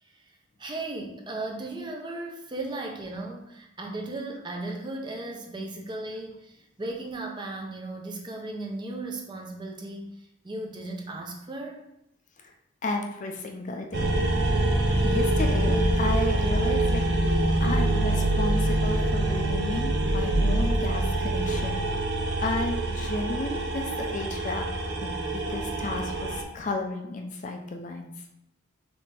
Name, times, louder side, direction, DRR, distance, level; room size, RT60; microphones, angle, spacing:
voice 1, 0.6-6.5 6.8-10.2 10.4-11.8, right 2 dB, 25° right, 1 dB, 0.6 m, -36 dB
voice 2, 12.8-14.1 15.0-17.0 17.6-21.8 22.4-28.1, left 2 dB, 40° left, 3 dB, 0.4 m, -33 dB
sound 1, 13.9-26.4, right 2 dB, 60° right, 0.7 m, -25 dB
4.1 x 3.3 x 3.3 m, 0.82 s
head